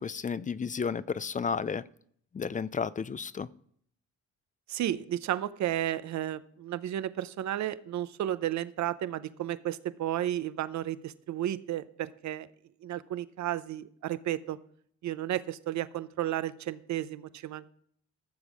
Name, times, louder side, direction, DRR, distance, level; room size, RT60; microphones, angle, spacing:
voice 1, 0.0-1.8 2.3-3.5, left 6 dB, 25° left, 18 dB, 0.5 m, -32 dB
voice 2, 4.7-12.5 12.8-14.6 15.0-17.7, right 12 dB, 65° right, 15 dB, 0.8 m, -33 dB
14.0 x 7.2 x 4.9 m, 0.63 s
cardioid pair, 90°, 30 cm